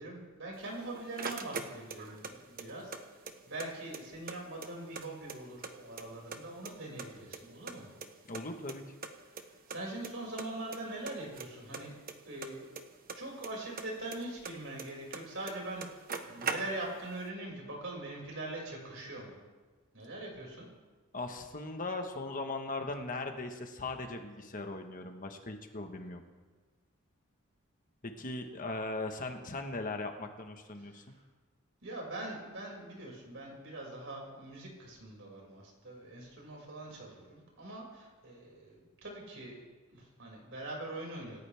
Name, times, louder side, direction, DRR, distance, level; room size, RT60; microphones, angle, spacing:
voice 1, 0.0-2.9 3.2-7.9 9.7-11.9 12.2-12.7 13.1-19.3 19.9-20.6 30.8-31.2 31.8-39.6 39.9-41.4, right 2 dB, 60° right, -2 dB, 6.2 m, -43 dB
sound 1, 0.6-2.3 2.6-3.7 3.9-4.0 4.3-5.7 6.0-6.7 7.0-8.4 8.7-8.8 9.0-9.1 9.4-9.5 9.7-10.1 10.4-10.8 11.1-13.5 13.8-15.2 15.5-15.6 15.8-17.0, right 5 dB, 45° right, 1.2 m, -40 dB
voice 2, 8.3-8.8 21.1-26.2 28.0-31.0, left 2 dB, 40° left, 5 dB, 1.4 m, -39 dB
27.0 x 14.0 x 3.6 m, 1.3 s
head